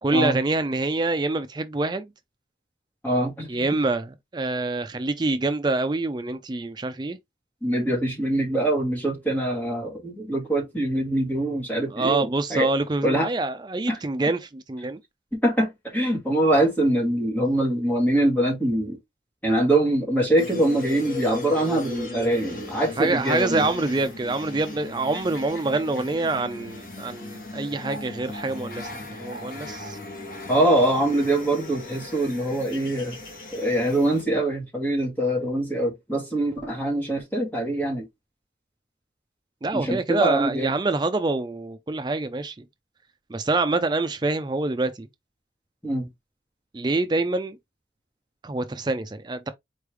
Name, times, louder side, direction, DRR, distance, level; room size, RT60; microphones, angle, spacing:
voice 1, 0.0-2.1 3.5-7.2 11.9-15.0 23.0-30.0 39.6-42.6 43.3-45.1 46.7-47.6 48.4-49.5, right 2 dB, 25° right, 0.4 m, -26 dB
voice 2, 3.0-3.7 7.6-12.7 13.0-13.3 13.9-14.0 15.3-19.0 19.4-23.7 30.5-33.2 33.5-38.1 39.7-40.7 45.8-46.1, right 1 dB, 10° left, 1.7 m, -23 dB
sound 1, 20.4-34.2, left 3 dB, 50° left, 1.2 m, -38 dB
4.6 x 3.2 x 3.2 m
head